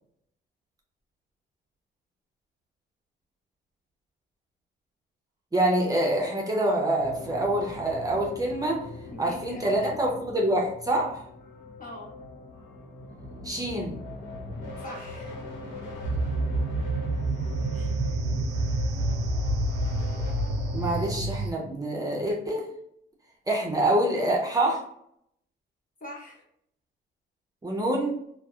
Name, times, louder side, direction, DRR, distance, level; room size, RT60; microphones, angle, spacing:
voice 1, 5.5-8.8 9.2-11.2 13.4-14.0 20.7-22.7 23.5-24.9 27.6-28.2, right 1 dB, 20° right, -2 dB, 0.6 m, -26 dB
sound 1, 7.0-21.2, left 3 dB, 70° left, 0.9 m, -40 dB
voice 2, 9.1-10.2 11.8-12.1 14.8-15.4 17.7-17.9 26.0-26.4, left 1 dB, 45° left, -2 dB, 1.0 m, -43 dB
sound 2, 16.0-21.5, right 2 dB, 60° right, 0.4 m, -28 dB
2.6 x 2.0 x 2.3 m, 0.71 s
cardioid pair, 90°, 20 cm